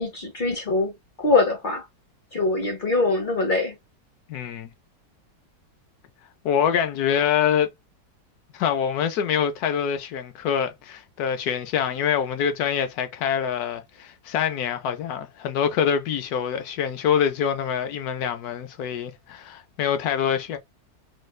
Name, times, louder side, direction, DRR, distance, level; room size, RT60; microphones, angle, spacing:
voice 1, 0.0-1.8 2.3-3.7, left 3 dB, 50° left, 0.6 m, -23 dB
voice 2, 4.3-4.7 6.4-7.7 8.5-20.6, left 8 dB, 70° left, 1.0 m, -25 dB
3.2 x 2.3 x 3.1 m
omnidirectional pair, 1.9 m